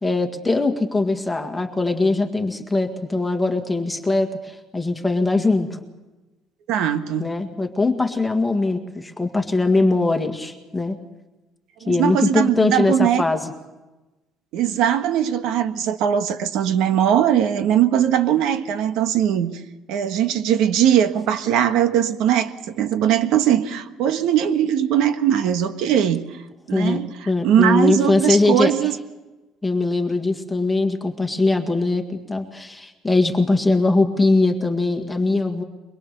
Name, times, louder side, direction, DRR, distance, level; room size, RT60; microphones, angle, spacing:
voice 1, 0.0-5.7 7.2-11.0 11.9-13.4 26.7-28.7 29.6-35.6, left 2 dB, 5° left, 4 dB, 1.9 m, -21 dB
voice 2, 6.7-7.3 11.8-13.2 14.5-19.5 19.9-26.2 26.7-28.9, right 10 dB, 75° right, 8 dB, 1.5 m, -20 dB
23.5 x 22.0 x 6.8 m, 1.1 s
cardioid pair, 165°, 0 cm